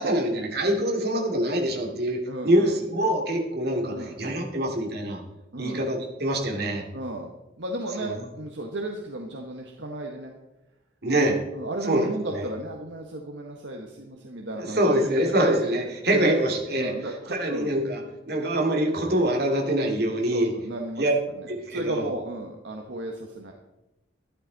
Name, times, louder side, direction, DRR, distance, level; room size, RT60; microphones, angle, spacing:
voice 1, 0.0-5.2 5.6-6.9 8.0-8.1 11.0-11.4 11.9-12.1 12.3-12.4 14.6-16.9 17.3-18.0 18.3-20.5 21.0-21.1 21.5-22.1, right 1 dB, 60° right, 0 dB, 2.6 m, -24 dB
voice 2, 2.3-2.8 3.8-4.1 5.5-5.8 6.9-10.3 11.5-15.2 16.1-16.3 16.8-17.7 20.3-21.0 21.3-23.5, right 1 dB, 75° right, 1 dB, 1.3 m, -34 dB
12.5 x 12.0 x 4.1 m, 0.97 s
head